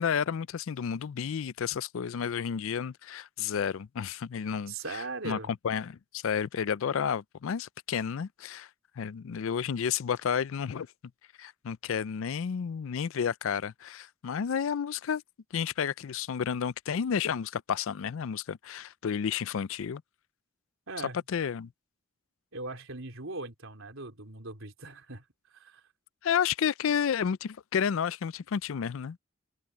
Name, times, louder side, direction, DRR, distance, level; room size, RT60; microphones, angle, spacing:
voice 1, 0.0-8.7 9.0-10.9 11.4-15.2 15.5-20.0 21.3-21.7 26.2-29.2, left 7 dB, 70° left, 0.4 m, -31 dB
voice 2, 4.7-5.5 20.9-21.2 22.5-25.2 25.5-25.8, right 3 dB, 70° right, 3.5 m, -39 dB
open air
head